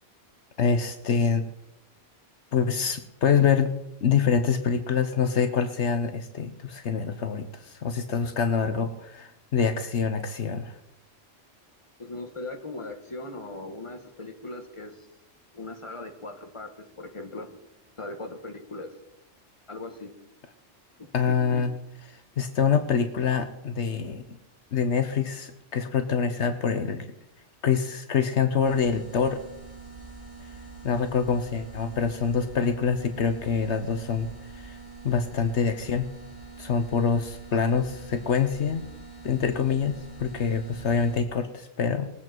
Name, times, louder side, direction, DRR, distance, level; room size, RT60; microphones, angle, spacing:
voice 1, 0.6-1.4 2.5-3.7 4.0-10.8 21.1-21.7 22.1-24.2 24.7-27.1 27.6-29.4 30.8-34.3 34.5-34.8 35.0-36.1 36.6-38.8 39.2-42.1, left 6 dB, 75° left, 9 dB, 1.2 m, -25 dB
voice 2, 12.0-15.1 15.5-17.6 18.0-18.9 19.7-20.1 21.0-21.7, left 2 dB, 25° left, 4 dB, 1.8 m, -39 dB
sound 1, 28.6-41.2, right 3 dB, 30° right, 2.9 m, -44 dB
20.5 x 8.6 x 4.5 m, 0.83 s
omnidirectional pair, 1.2 m